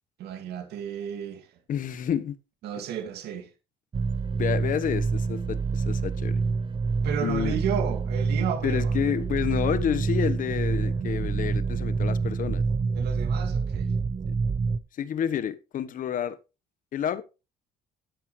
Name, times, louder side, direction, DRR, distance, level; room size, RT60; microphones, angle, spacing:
voice 1, 0.2-1.6 2.6-3.5 7.0-8.9 12.9-13.9, right 8 dB, 75° right, 2.4 m, -32 dB
voice 2, 1.7-2.3 4.3-6.4 7.2-7.5 8.6-12.6 14.3-14.4 15.0-16.4 16.9-17.2, left 9 dB, 55° left, 1.2 m, -29 dB
sound 1, 3.9-14.8, right 4 dB, 30° right, 0.8 m, -27 dB
12.0 x 9.7 x 3.3 m
cardioid pair, 110°, 17 cm